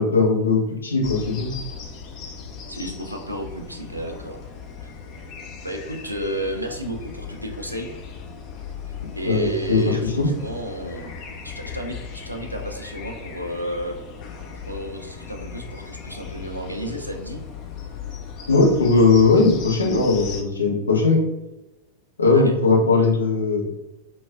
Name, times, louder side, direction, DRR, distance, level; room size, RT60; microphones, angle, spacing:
voice 1, 0.0-1.5 9.2-10.3 18.5-21.2 22.2-23.7, left 3 dB, 75° left, -2 dB, 0.7 m, -19 dB
sound 1, 1.0-20.4, left 6 dB, 40° left, 0.5 m, -37 dB
voice 2, 2.7-4.4 5.6-7.9 9.1-11.1 11.4-14.0 14.5-17.4 22.3-22.5, right 1 dB, 90° right, 2 dB, 0.4 m, -32 dB
4.0 x 2.2 x 2.4 m, 1.0 s
figure-of-eight pair, 90°, 0 cm